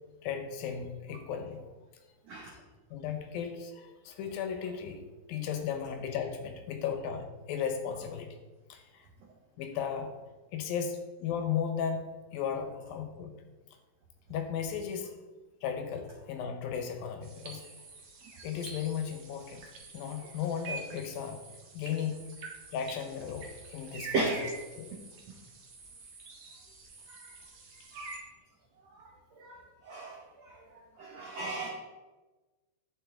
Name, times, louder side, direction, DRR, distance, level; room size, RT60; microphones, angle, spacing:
voice 1, 0.2-1.7 2.9-8.4 8.7-9.1 9.6-10.1 10.5-13.3 14.3-15.2 15.6-17.6 18.4-19.6 19.9-21.4 21.7-22.3 22.7-25.0, left 7 dB, 75° left, 5 dB, 2.5 m, -35 dB
sound 1, 17.2-28.2, right 4 dB, 55° right, 2.4 m, -47 dB
voice 2, 27.9-28.2 29.0-29.1 29.4-31.7, right 3 dB, 85° right, 0 dB, 1.4 m, -36 dB
11.0 x 6.7 x 3.6 m, 1.2 s
omnidirectional pair, 4.4 m